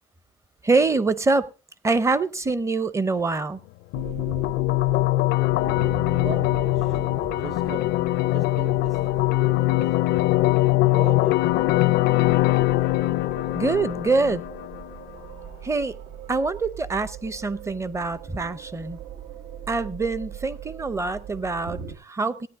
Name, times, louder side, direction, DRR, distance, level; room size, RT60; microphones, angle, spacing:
voice 1, 0.6-1.5 1.8-3.6 13.5-14.4 15.6-16.0 16.3-19.0 19.7-22.5, right 3 dB, 15° right, 0.7 m, -25 dB
sound 1, 3.9-14.9, left 18 dB, 90° left, 0.5 m, -22 dB
sound 2, 3.9-22.0, right 8 dB, 75° right, 1.5 m, -40 dB
voice 2, 6.2-10.2 10.9-11.7, right 5 dB, 45° right, 1.3 m, -40 dB
17.0 x 9.7 x 3.6 m
cardioid pair, 110°, 17 cm